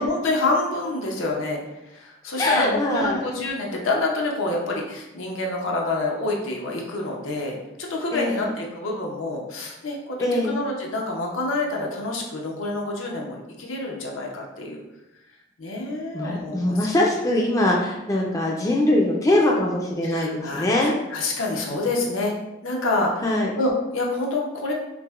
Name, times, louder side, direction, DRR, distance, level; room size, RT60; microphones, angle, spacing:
voice 1, 0.0-1.6 1.9-7.5 7.8-14.8 15.6-16.8 18.1-18.3 20.0-22.3 22.6-24.7, left 2 dB, 85° left, -1 dB, 0.7 m, -27 dB
voice 2, 2.4-3.2 8.1-8.5 10.2-10.6 16.1-20.9 23.2-23.5, left 1 dB, 15° left, -2 dB, 0.4 m, -22 dB
5.8 x 2.1 x 2.3 m, 0.95 s
head